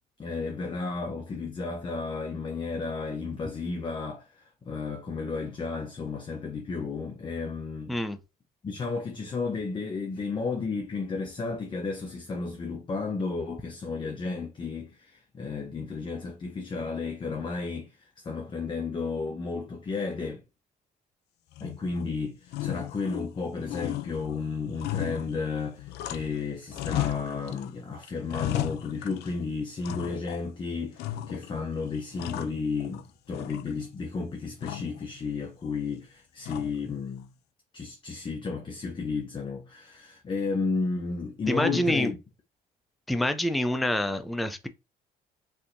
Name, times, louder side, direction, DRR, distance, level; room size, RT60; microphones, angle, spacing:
voice 1, 0.2-8.0 8.6-18.0 18.2-20.4 21.6-37.3 37.7-42.2, left 4 dB, 30° left, 0.7 m, -33 dB
sound 1, 21.5-22.1 22.5-23.4 23.7-26.4 26.7-27.7 28.0-29.4 29.8-30.5 31.0-31.6 31.9-33.0 33.3-34.0 34.6-35.0 36.4-37.0, left 13 dB, 75° left, 0.4 m, -35 dB
voice 2, 41.5-42.1 43.1-44.7, left 1 dB, ahead, 0.4 m, -26 dB
4.3 x 2.7 x 2.6 m
cardioid pair, 110°, 17 cm